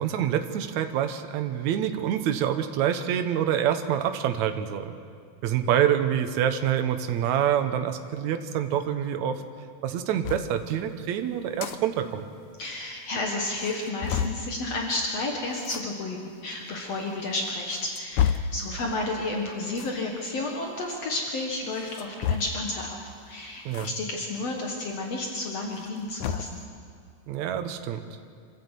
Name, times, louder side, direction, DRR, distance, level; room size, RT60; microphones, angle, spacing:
voice 1, 0.0-4.9 5.4-9.4 9.8-12.2 23.7-23.9 27.3-28.0, right 9 dB, 70° right, 7 dB, 2.3 m, -26 dB
sound 1, 10.2-10.5 11.4-11.8 12.1-12.2 12.5-12.6 13.1-13.2 13.6-14.4 15.6-15.8 16.7-16.8 17.5-18.6 19.7-20.0 21.8-22.7 23.7-23.9 24.3-24.4 25.7-26.6, left 8 dB, 85° left, 2.2 m, -29 dB
voice 2, 12.6-23.0 23.3-26.6, left 2 dB, 60° left, 0 dB, 2.6 m, -31 dB
26.0 x 13.0 x 8.3 m, 2.2 s
omnidirectional pair, 3.5 m